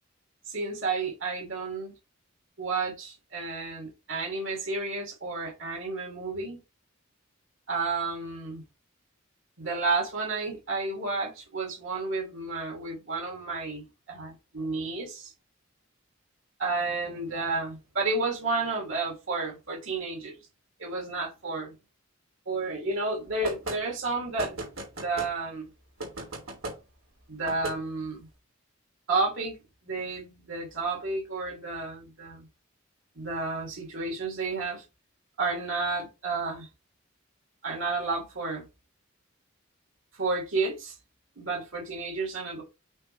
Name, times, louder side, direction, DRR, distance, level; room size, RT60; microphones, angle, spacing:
voice 1, 0.5-1.9 2.6-6.6 7.7-8.6 9.6-15.3 16.6-20.4 20.8-21.7 22.5-24.6 25.0-25.7 27.3-28.3 29.1-29.5 29.8-32.5 33.1-34.8 35.4-36.7 37.6-38.7 40.2-40.9 41.4-42.6, right 3 dB, 70° right, 3.0 m, -31 dB
sound 1, 23.4-23.8 24.4-25.3 26.0-26.8 27.4-27.8, right 2 dB, 90° right, 3.0 m, -35 dB
8.6 x 3.4 x 3.3 m
head